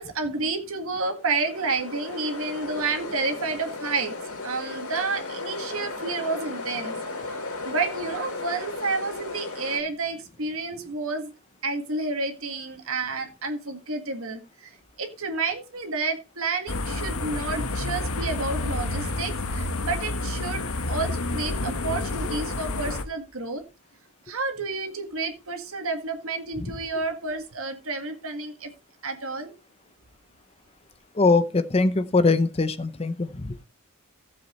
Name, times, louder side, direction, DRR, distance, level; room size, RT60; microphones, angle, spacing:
voice 1, 0.0-4.1 4.4-7.0 7.7-11.3 11.6-14.4 15.0-23.6 24.3-28.7 29.0-29.5, right 3 dB, 65° right, 1.8 m, -30 dB
sound 1, 1.1-9.8, left 3 dB, 85° left, 4.1 m, -35 dB
sound 2, 16.7-23.0, left 2 dB, 70° left, 1.2 m, -29 dB
voice 2, 31.2-33.6, left 3 dB, 25° left, 0.6 m, -22 dB
15.5 x 7.5 x 3.1 m
head